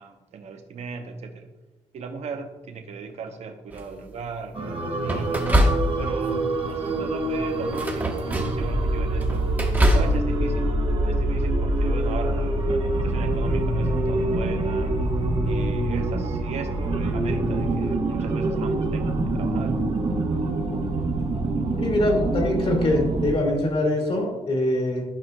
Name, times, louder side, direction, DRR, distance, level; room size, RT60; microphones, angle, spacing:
voice 1, 0.0-1.5 1.9-12.6 13.0-15.0 15.4-19.8, right 5 dB, 65° right, 6 dB, 0.7 m, -37 dB
sound 1, 3.7-4.2 5.0-6.3 6.7-7.0 7.6-8.7 9.1-10.2, equal, 15° right, 1.1 m, -24 dB
sound 2, 4.5-23.3, right 2 dB, 50° right, 1.1 m, -25 dB
voice 2, 21.8-25.0, left 1 dB, 50° left, 0 dB, 1.9 m, -23 dB
11.0 x 5.6 x 2.2 m, 1.1 s
cardioid pair, 95°, 12 cm